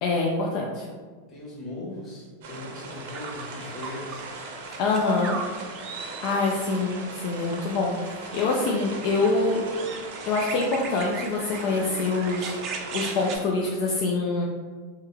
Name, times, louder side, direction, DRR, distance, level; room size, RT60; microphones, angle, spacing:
voice 1, 0.0-0.9 4.8-5.4 6.2-9.6 10.3-14.5, left 3 dB, 55° left, -2 dB, 0.4 m, -25 dB
voice 2, 1.3-4.3, left 2 dB, 25° left, -5 dB, 1.3 m, -39 dB
sound 1, 2.4-13.4, right 3 dB, 70° right, 0.7 m, -39 dB
sound 2, 3.1-4.3 4.6-6.6 8.3-13.4, right 5 dB, 40° right, 0.4 m, -38 dB
3.6 x 2.1 x 3.3 m, 1.5 s
supercardioid pair, 130°, 0 cm